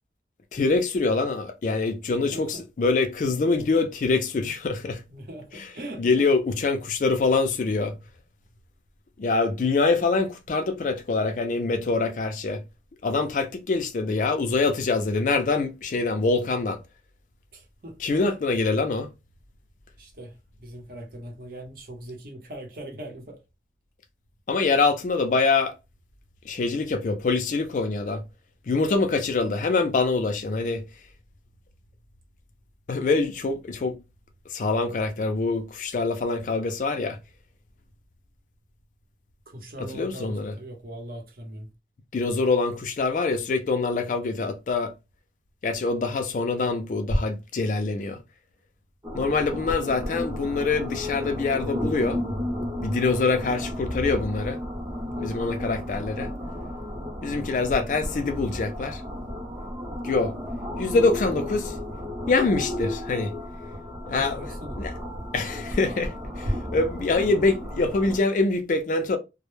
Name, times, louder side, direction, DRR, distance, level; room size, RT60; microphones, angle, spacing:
voice 1, 0.5-5.0 5.5-5.7 6.0-7.9 9.2-12.6 13.0-16.8 18.0-19.1 24.5-25.7 26.5-28.2 28.7-30.8 32.9-33.9 34.5-37.2 39.9-40.5 42.1-44.9 45.6-48.2 49.1-52.2 52.8-54.6 55.2-56.3 57.2-59.0 60.0-60.3 60.8-61.8 62.3-63.3 64.1-64.5 64.8-64.9 65.3-69.2, left 3 dB, 45° left, 0.3 m, -25 dB
voice 2, 2.1-2.6 5.1-6.3 17.5-18.0 20.0-23.4 39.5-41.7 55.0-55.3 64.1-64.8, right 1 dB, 50° right, 0.7 m, -41 dB
sound 1, 49.0-68.2, left 1 dB, 20° right, 0.5 m, -33 dB
2.0 x 2.0 x 3.0 m
head